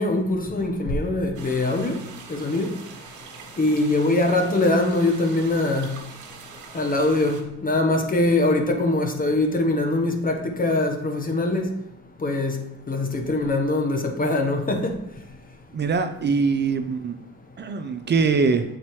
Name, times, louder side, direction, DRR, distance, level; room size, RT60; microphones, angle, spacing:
voice 1, 0.0-2.0 2.3-2.7 3.6-5.9 6.7-11.7 12.2-12.6 12.9-14.9, left 2 dB, 25° left, 1.1 m, -22 dB
sound 1, 1.3-7.4, right 5 dB, 70° right, 1.4 m, -43 dB
voice 2, 15.7-17.2 17.6-18.6, right 4 dB, 35° right, 0.5 m, -22 dB
7.9 x 4.1 x 3.1 m
supercardioid pair, 70°, 31 cm